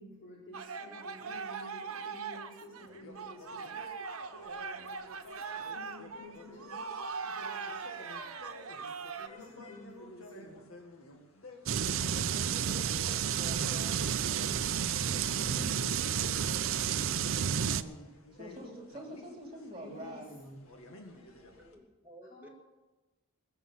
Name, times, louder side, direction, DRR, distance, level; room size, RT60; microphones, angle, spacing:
voice 1, 0.0-3.7 5.7-6.8 9.3-10.7 13.9-16.3 16.7-17.2 19.8-20.2 22.3-22.5, left 1 dB, 45° left, -7 dB, 4.5 m, -50 dB
sound 1, 0.5-9.3, right 5 dB, 85° right, 1.0 m, -41 dB
sound 2, 2.8-21.7, left 2 dB, 80° left, 2.0 m, -52 dB
sound 3, 11.7-17.8, right 8 dB, 70° right, 0.5 m, -31 dB
voice 2, 13.3-14.2 17.6-20.6, right 1 dB, 25° right, 1 dB, 2.8 m, -46 dB
voice 3, 21.1-22.5, equal, 10° right, -2 dB, 1.9 m, -56 dB
21.0 x 7.1 x 7.0 m, 1.1 s
head